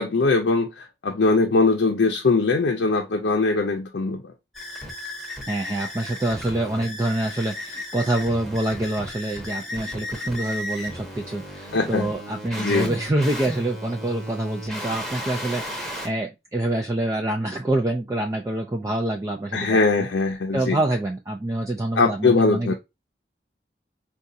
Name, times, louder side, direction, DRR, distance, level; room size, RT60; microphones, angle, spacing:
voice 1, 0.0-4.3 11.7-12.1 12.6-12.9 19.5-20.8 21.9-22.7, left 3 dB, 85° left, 0.5 m, -21 dB
sound 1, 4.5-16.1, left 1 dB, ahead, 0.8 m, -34 dB
voice 2, 5.5-20.1 20.5-22.7, right 1 dB, 20° right, 0.3 m, -26 dB
4.8 x 2.3 x 2.6 m
head